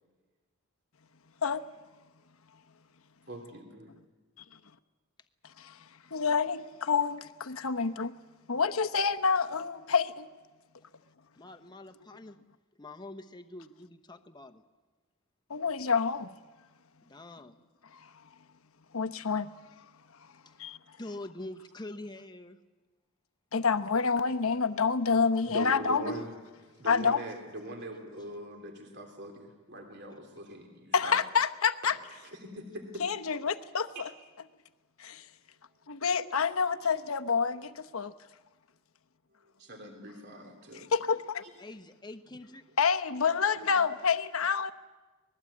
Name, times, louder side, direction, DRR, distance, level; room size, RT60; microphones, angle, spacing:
voice 1, 3.3-3.9 25.4-26.3 26.8-31.2 31.8-31.9 32.2-33.0 33.9-34.1 39.6-40.9 43.7-43.8, right 1 dB, 50° right, 3.2 m, -42 dB
voice 2, 6.1-8.1 8.5-10.3 15.5-16.3 17.9-18.1 18.9-19.5 20.6-20.8 23.5-26.2 26.9-27.2 30.9-32.0 33.0-34.1 35.0-35.3 35.9-38.1 40.9-41.4 42.8-44.7, left 5 dB, 75° left, 1.0 m, -28 dB
voice 3, 11.3-12.4 12.8-14.6 17.0-17.6 20.5-20.7 21.0-22.6 41.6-42.6, left 2 dB, 20° left, 0.9 m, -45 dB
25.0 x 20.0 x 8.6 m
head